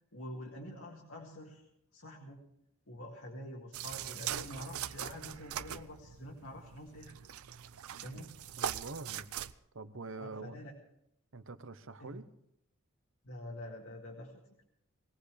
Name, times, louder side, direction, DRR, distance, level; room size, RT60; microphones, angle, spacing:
voice 1, 0.1-2.4 2.9-7.2 8.0-8.3 10.2-10.7 12.0-12.2 13.2-14.6, left 1 dB, 70° left, -1 dB, 2.0 m, -47 dB
sound 1, 3.7-9.5, right 10 dB, 85° right, 0.5 m, -41 dB
voice 2, 7.9-8.3 8.6-9.3 9.7-10.6 11.3-12.2, right 3 dB, 60° right, 12 dB, 0.8 m, -45 dB
20.5 x 17.5 x 3.3 m, 0.78 s
head